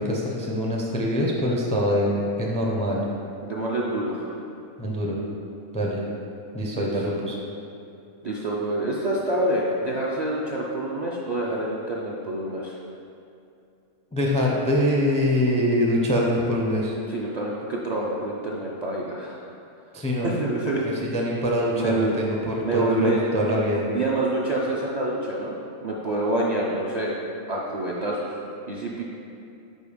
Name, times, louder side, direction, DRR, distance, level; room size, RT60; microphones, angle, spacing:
voice 1, 0.0-3.0 4.8-5.2 5.7-6.0 6.5-7.4 14.1-17.0 19.9-20.3 20.8-23.8, equal, 10° left, -3 dB, 0.3 m, -24 dB
voice 2, 3.4-4.3 6.7-7.1 8.2-12.8 17.1-19.4 20.2-20.9 21.8-22.2 22.6-23.6 23.9-27.1 27.5-28.3 28.7-29.0, right 1 dB, 50° right, -4 dB, 0.5 m, -27 dB
5.4 x 4.6 x 5.0 m, 2.6 s
omnidirectional pair, 1.4 m